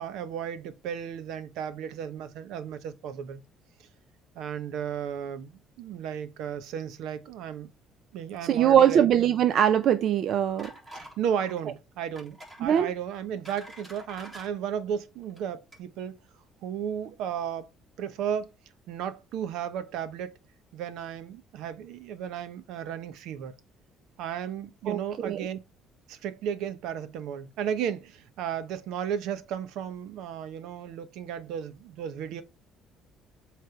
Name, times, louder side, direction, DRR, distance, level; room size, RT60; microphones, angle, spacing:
voice 1, 0.0-3.4 4.3-7.7 8.1-9.1 10.9-16.2 16.6-17.7 18.0-18.5 18.9-20.4 20.7-23.5 24.2-25.6 26.1-32.4, right 8 dB, 75° right, 0.9 m, -34 dB
voice 2, 8.4-10.7 12.6-12.9 24.9-25.5, right 9 dB, 55° right, 0.5 m, -22 dB
sound 1, 10.6-11.2 11.4-11.6 12.2-12.6 13.1-14.5 15.2-15.4 15.7-15.8, equal, 20° right, 3.9 m, -46 dB
7.8 x 3.3 x 4.5 m
cardioid pair, 130°, 0 cm